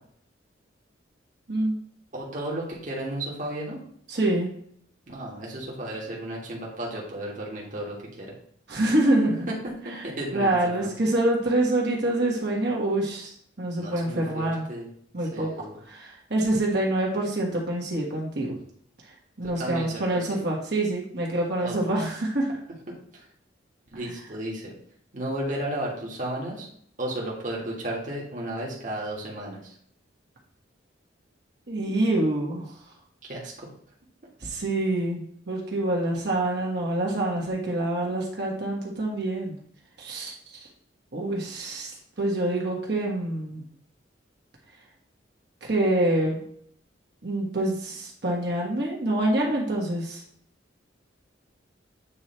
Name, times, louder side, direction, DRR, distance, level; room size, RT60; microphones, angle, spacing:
voice 1, 2.1-3.8 5.1-8.3 9.5-9.6 9.8-10.9 13.7-14.9 15.3-15.8 19.4-20.5 21.6-21.8 23.1-23.2 23.9-24.7 25.1-26.7 27.0-29.8 33.3-33.7, right 1 dB, 45° right, -4 dB, 1.6 m, -34 dB
voice 2, 4.1-4.5 8.7-9.5 9.9-10.0 10.3-14.6 15.1-18.6 19.4-22.5 23.9-24.0 31.7-32.7 34.4-39.6 40.0-40.3 41.1-41.9 42.2-43.6 45.6-46.4 47.2-50.2, right 1 dB, 60° right, -2 dB, 1.6 m, -26 dB
8.5 x 3.2 x 4.3 m, 0.65 s
head